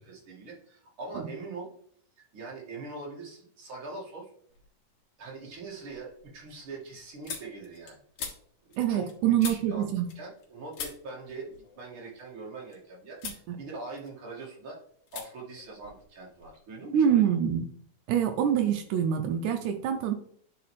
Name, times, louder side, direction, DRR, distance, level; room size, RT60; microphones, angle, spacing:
voice 1, 0.1-1.7 2.2-4.3 5.2-8.0 8.6-9.9 10.2-14.8 15.1-17.2, right 3 dB, 45° right, -3 dB, 2.2 m, -42 dB
sound 1, 4.5-5.0 5.4-10.5 10.7-12.8 13.2-13.5 13.8-14.6 15.1-15.3 15.5-16.6, left 6 dB, 65° left, 2.6 m, -43 dB
voice 2, 8.8-10.1 13.2-13.6 16.9-17.7 18.1-20.1, right 9 dB, 80° right, 6 dB, 1.9 m, -25 dB
9.8 x 4.7 x 3.1 m, 0.63 s
omnidirectional pair, 3.9 m